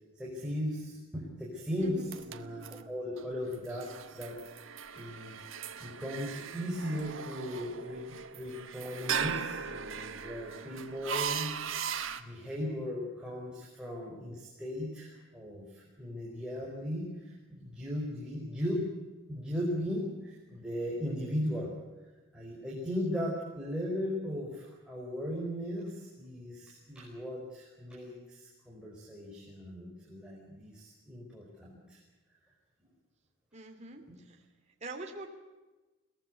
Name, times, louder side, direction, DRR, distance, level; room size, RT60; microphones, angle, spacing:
voice 1, 0.1-4.4 5.0-5.3 5.8-18.9 19.3-21.7 22.3-32.0, equal, 5° right, -4 dB, 5.1 m, -37 dB
sound 1, 1.8-12.2, right 7 dB, 70° right, 1.5 m, -39 dB
voice 2, 33.5-34.4 34.8-35.3, right 2 dB, 30° right, 2 dB, 2.8 m, -44 dB
23.0 x 19.0 x 8.1 m, 1.2 s
head